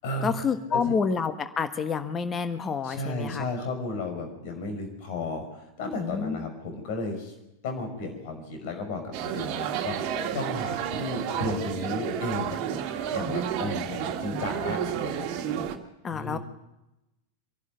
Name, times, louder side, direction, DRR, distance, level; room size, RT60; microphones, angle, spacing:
voice 1, 0.2-3.4 6.0-6.4 16.0-16.4, left 5 dB, 20° left, 10 dB, 1.3 m, -28 dB
voice 2, 2.8-7.3 7.6-12.6 13.1-15.3 16.1-16.4, left 2 dB, 50° left, 5 dB, 5.5 m, -34 dB
sound 1, 9.1-15.8, right 9 dB, 40° right, 1.8 m, -31 dB
25.0 x 11.5 x 9.3 m, 0.93 s
figure-of-eight pair, 90°, 0 cm